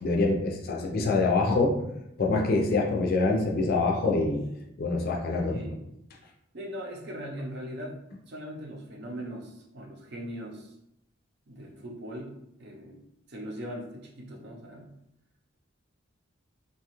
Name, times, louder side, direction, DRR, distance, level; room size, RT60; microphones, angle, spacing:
voice 1, 0.0-1.8 2.2-4.4 4.8-5.6, left 3 dB, 50° left, 0 dB, 0.4 m, -25 dB
voice 2, 5.5-5.8 6.5-8.0 8.3-10.8 11.5-13.0 13.3-14.9, equal, 60° right, -1 dB, 0.6 m, -40 dB
2.8 x 2.3 x 2.9 m, 0.81 s
head